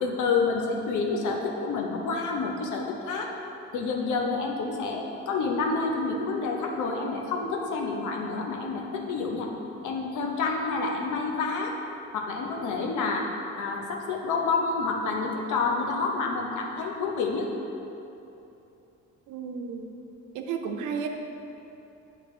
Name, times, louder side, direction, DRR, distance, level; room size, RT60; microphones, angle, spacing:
voice 1, 0.0-3.3 3.7-9.5 9.8-11.7 12.1-13.3 13.6-17.5, left 4 dB, 80° left, 1 dB, 0.9 m, -28 dB
voice 2, 19.3-19.9 20.3-21.1, right 6 dB, 90° right, 5 dB, 0.6 m, -32 dB
8.1 x 3.3 x 4.2 m, 2.9 s
cardioid pair, 90°, 30 cm